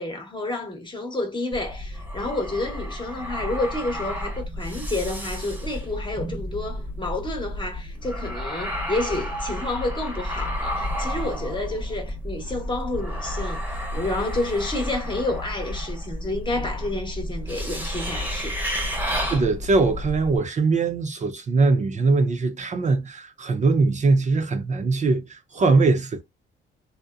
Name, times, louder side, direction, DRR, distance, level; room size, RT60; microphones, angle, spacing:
voice 1, 0.0-18.6, left 2 dB, 25° left, 0.9 m, -30 dB
sound 1, 1.5-20.4, equal, 10° right, 0.8 m, -31 dB
voice 2, 19.3-26.2, right 3 dB, 35° right, 0.5 m, -21 dB
2.7 x 2.0 x 2.3 m
cardioid pair, 90°, 20 cm